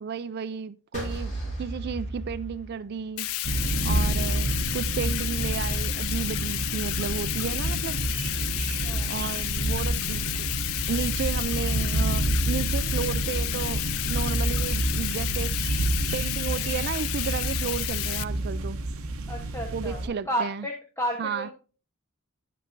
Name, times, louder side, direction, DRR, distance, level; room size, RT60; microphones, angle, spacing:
voice 1, 0.0-3.3 3.8-8.0 9.1-10.5 10.9-15.5 16.1-18.8 19.7-20.6 21.2-21.5, right 6 dB, 50° right, 0.4 m, -33 dB
sound 1, 0.9-3.3, right 1 dB, 35° left, 4.5 m, -35 dB
Bathtub (filling or washing), 3.2-18.2, left 16 dB, 70° left, 0.3 m, -31 dB
sound 2, 3.4-20.1, right 1 dB, 80° right, 0.8 m, -29 dB
voice 2, 8.8-9.4 19.3-21.5, equal, 10° left, 1.0 m, -32 dB
11.5 x 5.3 x 2.6 m
head